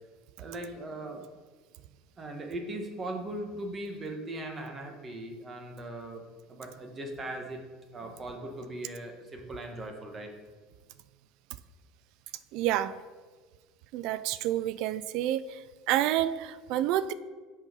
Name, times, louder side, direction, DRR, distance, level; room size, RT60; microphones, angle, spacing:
voice 1, 0.4-1.3 2.2-6.2 6.5-7.6 7.9-10.3, right 1 dB, 30° right, 3 dB, 1.4 m, -39 dB
voice 2, 12.5-12.9 13.9-15.4 15.9-17.1, right 13 dB, 65° right, 16 dB, 0.4 m, -28 dB
6.4 x 5.5 x 5.3 m, 1.4 s
supercardioid pair, 90°, 0 cm